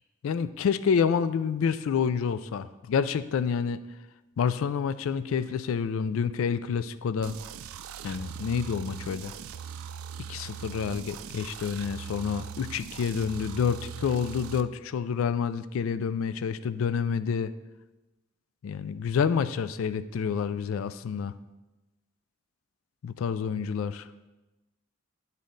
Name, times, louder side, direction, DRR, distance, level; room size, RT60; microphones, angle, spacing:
voice 1, 0.2-3.8 4.4-7.4 8.0-9.3 10.3-17.5 18.6-21.3 23.0-24.0, left 6 dB, 80° left, 14 dB, 0.3 m, -28 dB
sound 1, 7.2-14.6, right 8 dB, 90° right, 0.4 m, -41 dB
10.5 x 4.1 x 3.8 m, 1.1 s
head